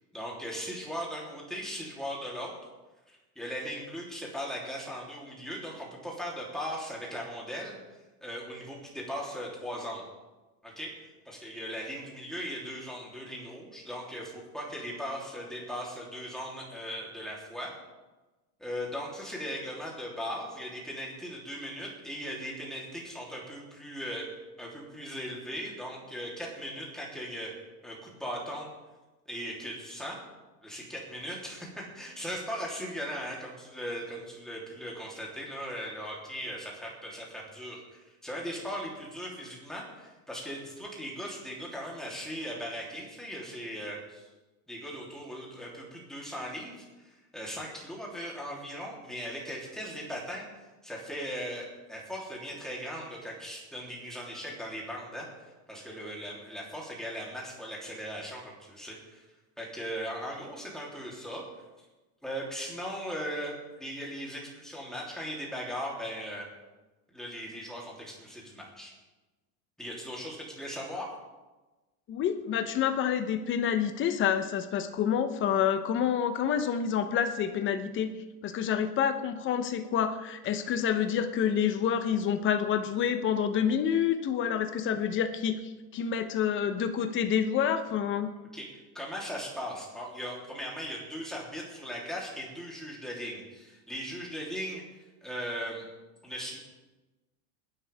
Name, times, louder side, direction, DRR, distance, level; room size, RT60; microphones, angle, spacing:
voice 1, 0.1-2.6 3.1-10.0 10.6-17.7 18.6-24.3 24.6-27.6 27.8-28.7 29.3-30.2 30.6-44.3 44.7-50.4 50.8-55.3 55.7-59.2 59.6-61.4 62.2-66.5 67.1-68.9 69.8-71.1 88.5-88.7 88.9-95.8 96.2-96.6, equal, ahead, -4 dB, 3.5 m, -38 dB
voice 2, 72.1-78.1 78.4-88.3, left 8 dB, 30° left, 8 dB, 1.1 m, -28 dB
20.5 x 11.0 x 3.6 m, 1.1 s
supercardioid pair, 155°, 40 cm